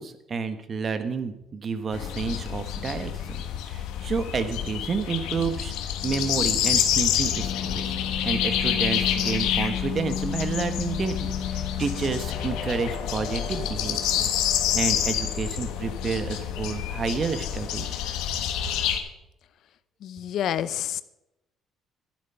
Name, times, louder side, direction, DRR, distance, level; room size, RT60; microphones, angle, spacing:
voice 1, 0.0-3.4 3.7-5.7 6.0-7.8 8.2-14.3 14.7-18.0, right 5 dB, 40° right, 10 dB, 1.3 m, -30 dB
sound 1, 1.9-19.0, left 9 dB, 90° left, 1.4 m, -27 dB
voice 2, 20.0-21.0, left 10 dB, 70° left, 15 dB, 0.6 m, -28 dB
12.0 x 9.8 x 5.8 m, 0.89 s
cardioid pair, 95°, 0 cm